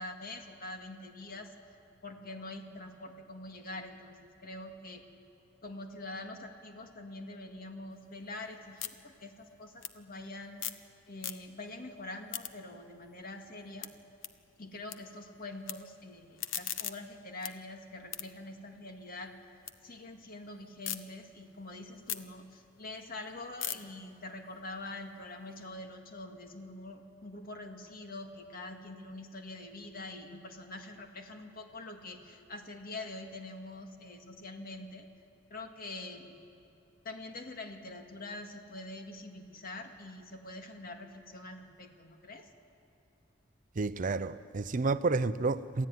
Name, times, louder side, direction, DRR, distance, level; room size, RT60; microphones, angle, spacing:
voice 1, 0.0-1.5 2.0-5.0 5.6-10.7 11.1-13.9 14.6-19.4 19.8-35.1 35.5-36.4 37.0-42.5, left 2 dB, 50° left, 2.0 m, -45 dB
sound 1, 7.9-10.9 11.1-11.8 12.1-15.0 15.3-15.7 16.2-19.8 20.1-21.0 21.4-25.6, left 11 dB, 75° left, 0.9 m, -43 dB
voice 2, 43.8-45.9, right 3 dB, 40° right, 0.5 m, -30 dB
27.0 x 15.0 x 9.4 m
head